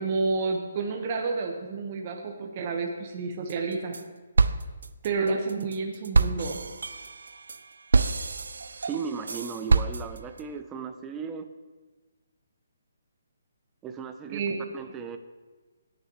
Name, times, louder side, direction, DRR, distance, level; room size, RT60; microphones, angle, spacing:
voice 1, 0.0-3.9 5.0-6.6 14.3-14.6, right 4 dB, 35° right, 2 dB, 1.2 m, -30 dB
sound 1, 3.5-4.0 4.4-10.4, right 4 dB, 80° right, 0.4 m, -26 dB
voice 2, 8.8-11.5 13.8-14.4 14.7-15.2, right 6 dB, 15° right, 8 dB, 0.6 m, -36 dB
18.0 x 6.7 x 3.1 m, 1.3 s
hypercardioid pair, 155°, 0 cm